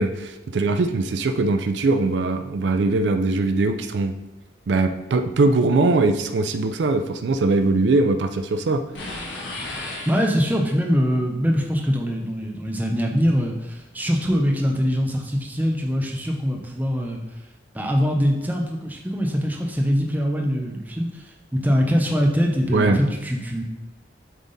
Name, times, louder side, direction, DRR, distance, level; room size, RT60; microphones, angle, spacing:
voice 1, 0.0-4.1 4.7-9.2 22.7-23.0, right 3 dB, 75° right, 8 dB, 0.4 m, -21 dB
sound 1, 8.9-10.8, left 2 dB, 80° left, 1.4 m, -34 dB
voice 2, 10.1-17.2 17.7-23.6, equal, 10° right, 1 dB, 0.7 m, -23 dB
7.5 x 3.5 x 4.0 m, 1.0 s
head